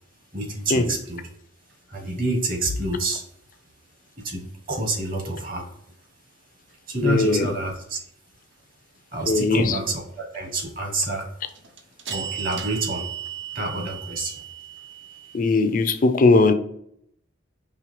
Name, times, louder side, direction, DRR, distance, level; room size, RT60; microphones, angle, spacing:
voice 1, 0.3-1.2 1.9-3.2 4.2-5.7 6.9-8.0 9.1-11.3 12.1-13.1 13.5-14.4, right 2 dB, 45° right, 2 dB, 1.2 m, -28 dB
sound 1, 1.1-1.2 11.4-15.4, right 9 dB, 65° right, 0.6 m, -35 dB
voice 2, 7.0-7.5 9.3-9.8 15.3-16.5, left 3 dB, 45° left, 9 dB, 0.4 m, -19 dB
4.8 x 3.2 x 3.2 m, 0.71 s
head